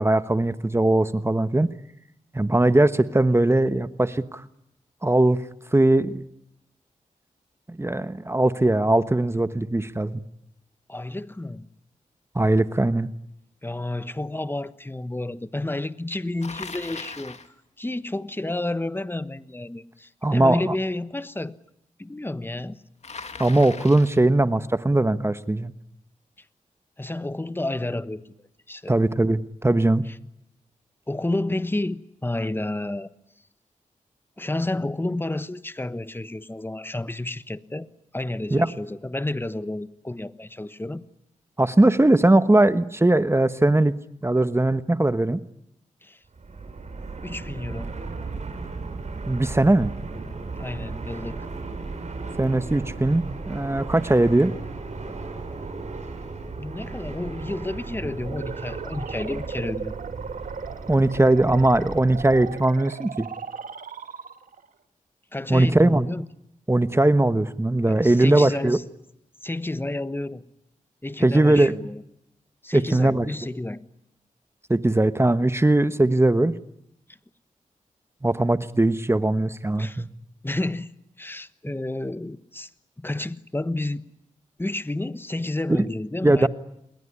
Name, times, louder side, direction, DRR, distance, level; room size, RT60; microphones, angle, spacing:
voice 1, 0.0-1.7 2.3-4.4 5.0-5.4 5.7-6.1 7.7-10.2 12.3-13.1 20.2-20.7 23.4-25.7 28.9-30.0 38.5-38.7 41.6-43.9 44.2-45.4 49.3-49.9 52.4-54.5 60.9-63.3 65.5-66.1 66.7-68.8 71.2-71.7 72.7-73.3 74.7-76.5 78.2-80.1 85.7-85.8 86.2-86.5, right 2 dB, 20° right, 1.2 m, -20 dB
voice 2, 10.9-11.7 13.6-17.4 17.8-21.6 22.0-22.8 27.0-28.2 28.7-28.9 31.1-33.1 34.4-37.9 38.1-41.0 46.0-46.2 47.2-48.0 50.6-51.4 56.6-59.9 65.3-66.3 67.9-68.8 69.4-70.5 71.0-72.0 72.6-73.8 79.8-80.0 80.4-80.9 81.2-82.7 83.0-84.0 84.6-86.5, left 2 dB, 15° left, 1.3 m, -30 dB
Bicycle, 16.4-17.5 23.0-24.3, left 4 dB, 55° left, 2.2 m, -38 dB
Fixed-wing aircraft airplane, 46.3-62.7, right 3 dB, 60° right, 7.4 m, -36 dB
sound 1, 58.2-64.7, right 6 dB, 85° right, 1.7 m, -37 dB
28.0 x 21.5 x 9.8 m
cardioid pair, 60°, 14 cm